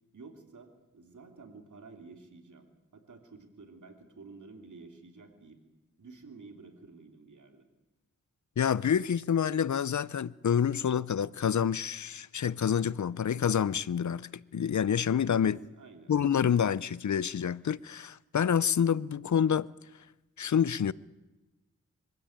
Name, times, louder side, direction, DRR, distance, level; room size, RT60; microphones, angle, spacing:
voice 1, 0.1-2.7 2.9-5.6 6.0-7.6 15.4-16.1, right 4 dB, 70° right, 3.2 m, -51 dB
voice 2, 8.6-15.6 16.1-19.7 20.4-20.9, left 8 dB, 65° left, 0.6 m, -28 dB
23.5 x 15.5 x 8.9 m
cardioid pair, 50°, 32 cm